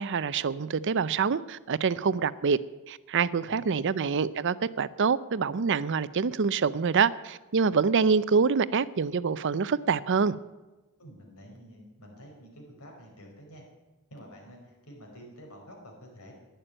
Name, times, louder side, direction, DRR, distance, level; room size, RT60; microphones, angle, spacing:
voice 1, 0.0-2.6 2.9-10.3, right 5 dB, 55° right, 0.5 m, -26 dB
voice 2, 3.4-3.9 11.0-13.6 14.1-16.3, equal, 90° left, 4.8 m, -49 dB
11.5 x 10.5 x 8.9 m
head